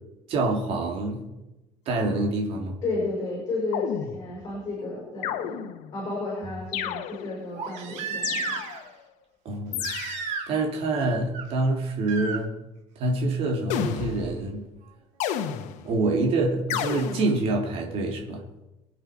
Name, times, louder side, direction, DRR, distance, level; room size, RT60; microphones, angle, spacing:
voice 1, 0.3-1.3 1.9-2.8 9.4-9.9 10.5-12.6 13.0-14.7 15.8-18.4, right 2 dB, 50° right, 1 dB, 2.8 m, -26 dB
voice 2, 2.8-8.6, left 2 dB, 30° left, -4 dB, 5.8 m, -32 dB
sound 1, 3.7-4.5 5.2-6.0 6.7-7.5 8.2-9.0 9.7-10.5 13.7-14.5 15.2-16.0 16.7-17.4, left 9 dB, 80° left, 1.3 m, -32 dB
Crying sobbing, 4.8-4.9 7.5-8.9 9.8-10.7 10.9-11.4 12.1-12.4 14.0-14.1, right 5 dB, 80° right, 2.6 m, -33 dB
23.5 x 8.1 x 4.9 m, 1.0 s
cardioid pair, 170°, 12 cm